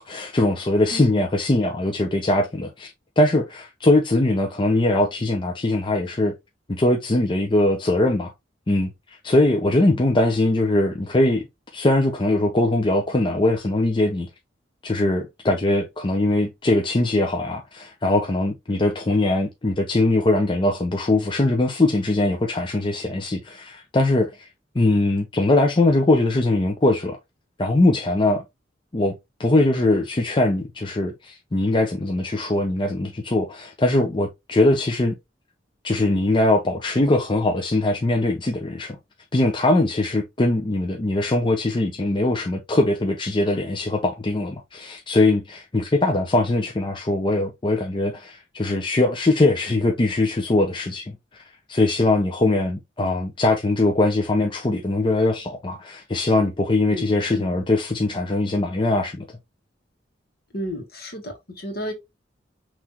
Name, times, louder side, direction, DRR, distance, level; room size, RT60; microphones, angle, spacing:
voice 1, 0.0-6.3 6.7-8.3 8.7-8.9 9.2-11.4 11.7-14.3 14.8-24.5 24.7-27.2 27.6-28.4 28.9-29.1 29.4-35.1 35.8-39.0 39.3-51.2 51.7-59.3, left 2 dB, 25° left, 0.6 m, -21 dB
voice 2, 60.5-61.9, equal, 55° left, 1.7 m, -32 dB
5.7 x 3.2 x 2.9 m
head